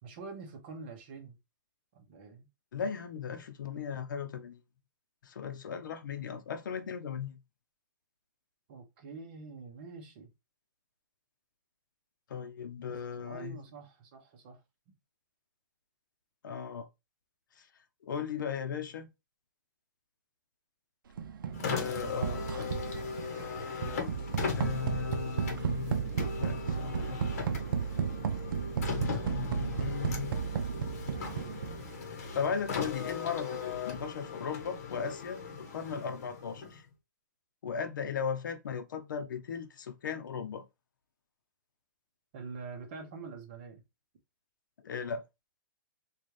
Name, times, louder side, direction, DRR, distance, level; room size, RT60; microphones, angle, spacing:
voice 1, 0.0-1.4 1.9-2.5 8.7-10.3 12.9-14.6 42.3-43.8, right 4 dB, 30° right, 0.8 m, -46 dB
voice 2, 2.7-4.6 5.2-7.4 12.3-13.6 16.4-16.9 17.6-17.7 18.0-19.1 21.6-22.9 24.6-26.0 26.4-27.4 29.2-30.3 32.0-35.4 35.7-36.9 37.6-40.6 44.8-45.2, left 6 dB, 70° left, 0.7 m, -37 dB
sound 1, 21.2-32.1, right 7 dB, 85° right, 0.5 m, -34 dB
Car, 21.5-36.9, left 5 dB, 45° left, 1.0 m, -39 dB
4.0 x 2.4 x 3.2 m
hypercardioid pair, 175°, 11 cm